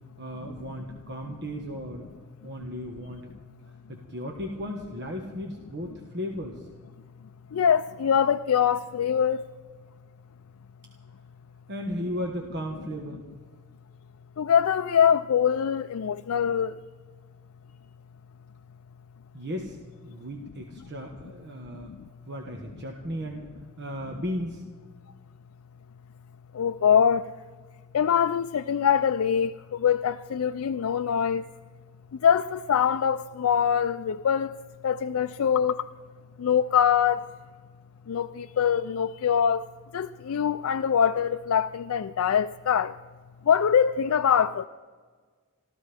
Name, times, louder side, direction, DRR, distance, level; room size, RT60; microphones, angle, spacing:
voice 1, 0.2-2.1 2.4-3.3 3.9-6.7 11.7-13.2 19.3-19.8 20.0-21.9 22.3-23.5 23.8-24.6, equal, 50° right, 1.4 m, -35 dB
voice 2, 7.5-9.4 14.4-16.8 21.9-22.1 26.5-27.3 27.9-31.5 32.2-34.5 34.8-35.9 36.4-37.3 38.1-43.0 43.4-44.7, left 8 dB, 70° left, 0.4 m, -24 dB
26.0 x 14.5 x 3.5 m
head